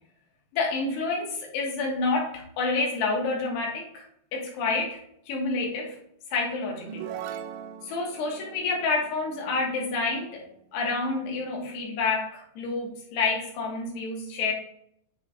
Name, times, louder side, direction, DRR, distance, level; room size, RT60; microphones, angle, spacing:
voice 1, 0.5-4.0 4.3-5.0 5.3-6.0 6.3-7.1 7.8-10.4 10.7-14.5, left 3 dB, 80° left, -1 dB, 3.5 m, -28 dB
sound 1, 6.8-10.4, right 9 dB, 85° right, 2.5 m, -40 dB
9.7 x 3.3 x 3.7 m, 0.71 s
omnidirectional pair, 4.8 m